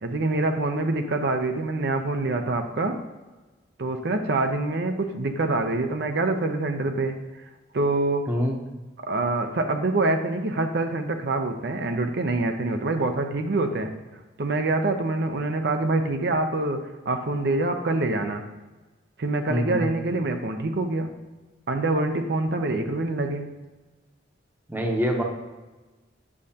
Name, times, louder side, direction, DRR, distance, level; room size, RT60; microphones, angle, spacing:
voice 1, 0.0-3.0 3.8-7.2 7.7-8.3 9.0-13.9 14.4-18.4 19.2-21.2 21.7-23.5, right 2 dB, 60° right, 6 dB, 0.6 m, -25 dB
voice 2, 19.5-19.9 24.7-25.2, equal, 10° right, 2 dB, 0.8 m, -25 dB
8.5 x 6.3 x 2.8 m, 1.2 s
head